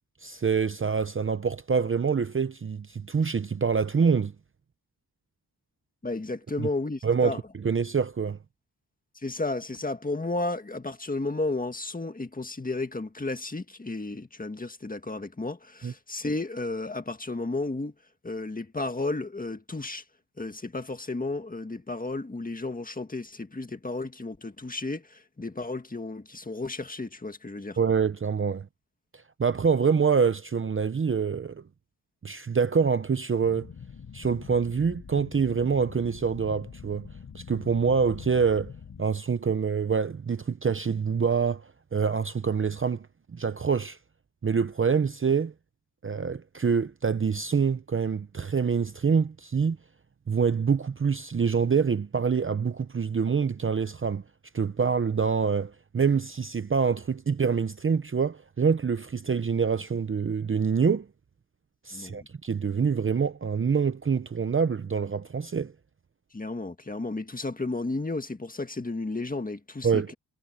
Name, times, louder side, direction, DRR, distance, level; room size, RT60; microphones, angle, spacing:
voice 1, 0.2-4.3 6.6-6.7 7.0-8.4 15.8-15.9 27.8-28.7 29.4-31.6 32.2-33.7 34.1-37.1 37.3-38.7 39.0-43.1 43.3-44.0 44.4-45.5 46.0-49.8 50.3-54.2 54.5-61.1 61.9-65.7 69.8-70.1, right 6 dB, 30° right, 0.7 m, -26 dB
voice 2, 6.0-7.4 9.1-17.9 18.2-20.0 20.4-27.8 61.9-62.3 66.3-70.1, left 2 dB, 20° left, 1.8 m, -33 dB
sound 1, 33.4-39.0, left 7 dB, 45° left, 1.4 m, -44 dB
wide cardioid pair, 130°, 39 cm